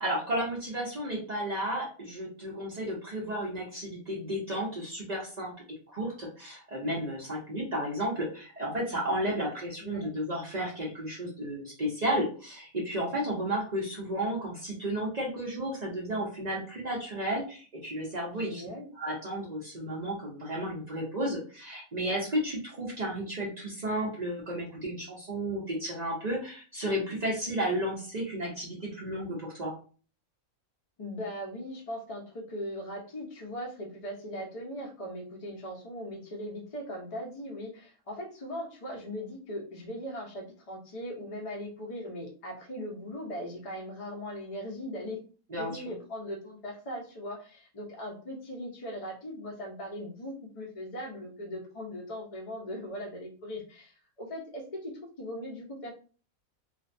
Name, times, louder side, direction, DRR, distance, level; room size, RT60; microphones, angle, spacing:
voice 1, 0.0-5.5 5.9-18.6 18.9-29.7 45.5-45.8, right 1 dB, 50° right, -3 dB, 0.5 m, -33 dB
voice 2, 9.8-10.1 18.3-18.9 31.0-45.2 45.6-55.9, equal, 40° left, -1 dB, 0.5 m, -39 dB
2.5 x 2.1 x 2.5 m, 0.38 s
omnidirectional pair, 1.5 m